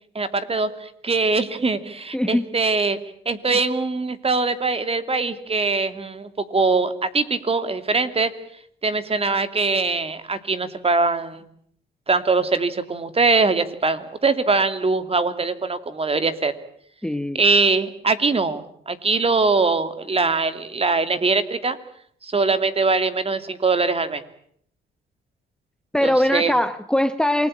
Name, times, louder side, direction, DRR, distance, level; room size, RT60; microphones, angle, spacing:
voice 1, 0.1-3.0 3.3-8.3 8.8-11.4 12.1-16.5 17.3-21.8 22.2-24.2 26.0-26.5, right 3 dB, 30° right, 11 dB, 2.7 m, -22 dB
voice 2, 2.1-2.5 17.0-17.4 25.9-27.5, left 1 dB, 5° left, 11 dB, 1.2 m, -21 dB
28.0 x 21.0 x 8.8 m, 0.64 s
cardioid pair, 90°, 20 cm